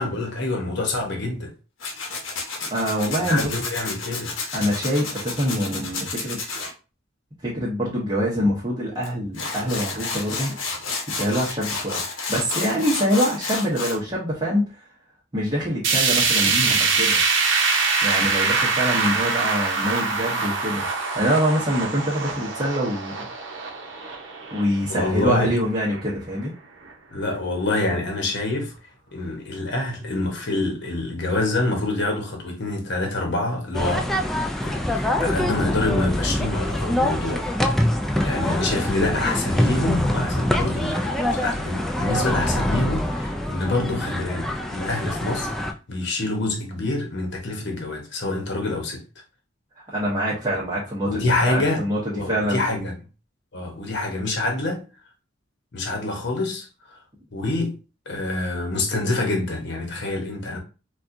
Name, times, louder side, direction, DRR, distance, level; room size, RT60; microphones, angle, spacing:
voice 1, 0.0-1.5 3.1-4.3 24.9-25.5 27.1-28.7 29.1-34.1 34.6-37.9 38.2-49.0 51.0-53.0 53.5-54.8 55.7-57.0 57.3-57.8 58.1-60.6, left 2 dB, 60° left, 0.9 m, -26 dB
Tools, 1.8-6.7 9.0-9.1 9.3-14.0, left 4 dB, 90° left, 0.9 m, -30 dB
voice 2, 2.7-3.5 4.5-6.4 7.4-10.5 11.1-12.0 12.3-14.8 15.3-17.2 18.0-23.1 24.5-26.5 49.9-51.1 51.5-52.0 52.2-52.8, equal, 25° right, 0.9 m, -25 dB
sound 1, 15.8-26.0 26.4-26.5 26.9-27.0 27.8-27.9, right 4 dB, 70° right, 0.7 m, -24 dB
sound 2, 33.7-45.7, left 1 dB, ahead, 0.3 m, -24 dB
4.2 x 2.3 x 2.5 m
head